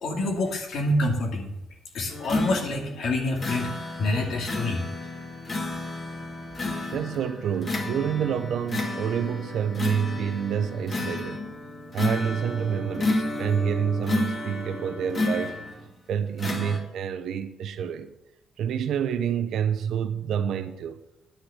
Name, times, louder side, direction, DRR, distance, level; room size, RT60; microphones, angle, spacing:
voice 1, 0.0-1.5 1.9-3.7 4.0-4.8, left 2 dB, 70° left, 2.4 m, -27 dB
sound 1, 2.1-15.9 16.4-16.8, left 2 dB, 35° left, 2.2 m, -31 dB
voice 2, 6.9-11.4 11.9-15.6 16.1-18.1 18.6-21.0, right 8 dB, 70° right, 0.7 m, -28 dB
9.9 x 6.1 x 7.7 m
cardioid pair, 90°, 0 cm